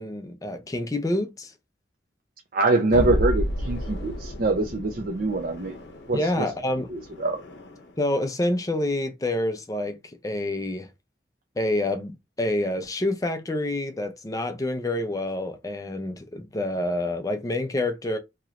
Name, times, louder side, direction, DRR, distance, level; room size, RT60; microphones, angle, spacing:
voice 1, 0.0-1.5 6.1-6.9 8.0-10.9 11.6-18.2, left 1 dB, 20° left, 0.4 m, -27 dB
voice 2, 2.5-5.8 6.1-6.5 6.9-7.4, right 3 dB, 50° right, 0.5 m, -24 dB
sound 1, 2.9-8.0, equal, 70° left, 0.7 m, -32 dB
3.0 x 2.8 x 2.4 m
head